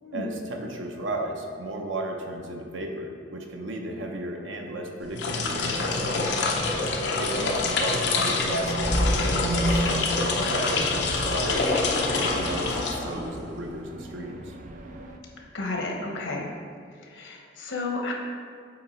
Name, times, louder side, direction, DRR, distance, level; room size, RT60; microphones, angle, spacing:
voice 1, 0.1-6.3 7.2-14.5, right 1 dB, 90° right, 2 dB, 0.7 m, -34 dB
sound 1, 5.0-13.5, left 3 dB, 65° left, 0.6 m, -26 dB
sound 2, 5.4-15.2, right 2 dB, 45° right, 0.4 m, -36 dB
sound 3, 8.6-9.9 10.8-13.4, equal, 20° right, 0.8 m, -31 dB
voice 2, 15.5-16.5 17.1-18.1, left 2 dB, 90° left, 0 dB, 0.9 m, -32 dB
7.7 x 3.0 x 4.3 m, 2.1 s
head